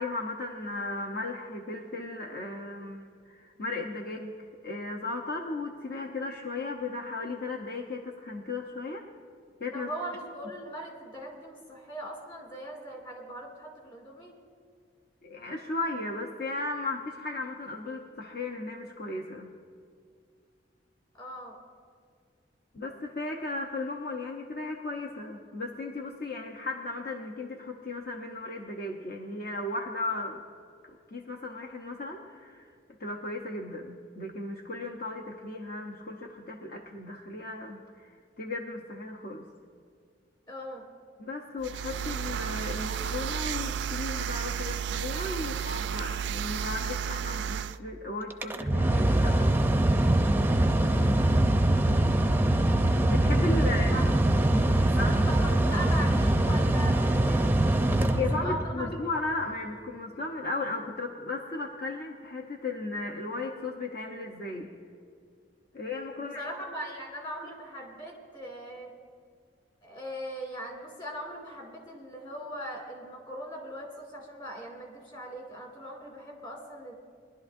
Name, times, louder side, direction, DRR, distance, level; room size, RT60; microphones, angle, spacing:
voice 1, 0.0-4.3 4.6-9.0 9.6-9.9 15.2-19.5 22.7-30.4 31.1-32.7 33.0-39.4 41.2-49.6 53.1-53.9 54.9-55.2 58.1-64.7 65.7-66.4, left 2 dB, 60° left, 1 dB, 0.9 m, -35 dB
voice 2, 9.7-14.3 21.2-21.6 40.5-40.9 53.6-54.0 54.8-57.5 57.9-58.9 66.2-68.9 69.8-77.0, right 1 dB, 30° left, -1 dB, 2.5 m, -40 dB
sound 1, 41.6-47.8, right 8 dB, 70° right, 0.3 m, -32 dB
Mechanical fan, 48.3-58.8, right 1 dB, 10° right, 0.5 m, -23 dB
22.0 x 11.5 x 2.6 m, 2.2 s
head